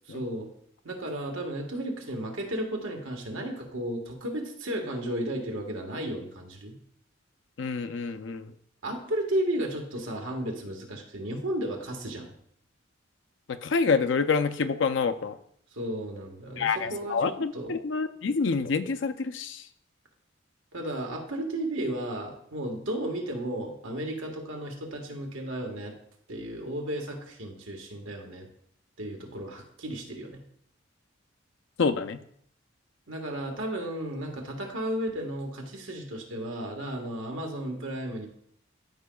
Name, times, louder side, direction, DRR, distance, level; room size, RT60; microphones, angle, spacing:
voice 1, 0.1-0.5 0.8-6.8 8.8-12.3 15.7-17.7 20.7-25.9 26.3-28.5 29.0-30.4 33.1-38.3, right 1 dB, 90° right, 2 dB, 1.5 m, -34 dB
voice 2, 7.6-8.5 13.5-15.4 16.6-19.7 31.8-32.2, left 5 dB, 65° left, 9 dB, 0.5 m, -27 dB
13.0 x 5.1 x 2.3 m, 0.67 s
head